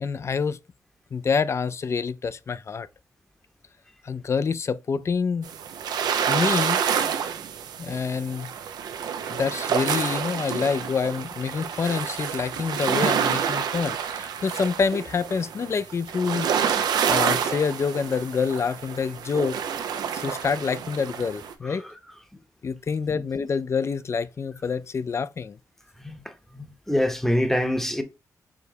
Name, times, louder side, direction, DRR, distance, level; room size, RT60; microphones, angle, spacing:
voice 1, 0.0-0.6 1.1-2.9 4.0-5.5 6.3-6.8 7.8-8.5 9.3-16.5 17.1-19.6 20.1-21.8 22.6-25.6, left 5 dB, 45° left, 0.3 m, -27 dB
sound 1, 5.4-21.5, right 7 dB, 90° right, 0.5 m, -28 dB
voice 2, 26.5-28.0, left 1 dB, 5° left, 0.8 m, -24 dB
4.8 x 3.3 x 2.7 m
cardioid pair, 75°, 7 cm